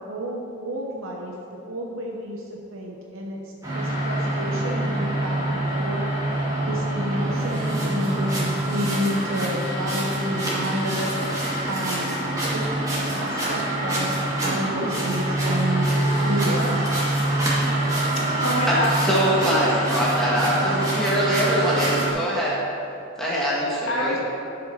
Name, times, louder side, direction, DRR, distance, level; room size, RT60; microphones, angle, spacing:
voice 1, 0.0-6.4 6.7-11.1 11.7-12.2 12.5-14.1 14.4-15.9 16.2-16.8, equal, 80° right, -1 dB, 1.0 m, -30 dB
sound 1, 3.6-22.1, right 1 dB, 15° right, 2.3 m, -25 dB
voice 2, 17.4-18.0 18.4-18.9 23.8-24.2, left 1 dB, 80° left, -3 dB, 1.9 m, -27 dB
voice 3, 18.7-22.6 23.2-24.2, equal, ahead, -7 dB, 1.5 m, -23 dB
11.5 x 5.5 x 5.7 m, 2.6 s
head